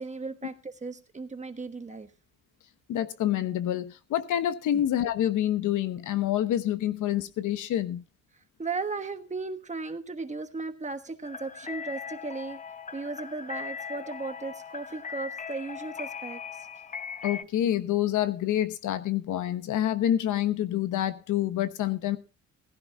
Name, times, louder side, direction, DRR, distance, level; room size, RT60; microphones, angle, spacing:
voice 1, 0.0-2.1 4.7-4.8 8.6-12.6 12.9-16.7, right 3 dB, 25° right, 1.3 m, -36 dB
voice 2, 2.9-8.0 17.2-22.2, left 11 dB, 80° left, 1.0 m, -27 dB
sound 1, 11.2-17.4, left 6 dB, 25° left, 0.7 m, -39 dB
16.5 x 15.5 x 2.3 m
cardioid pair, 90°, 30 cm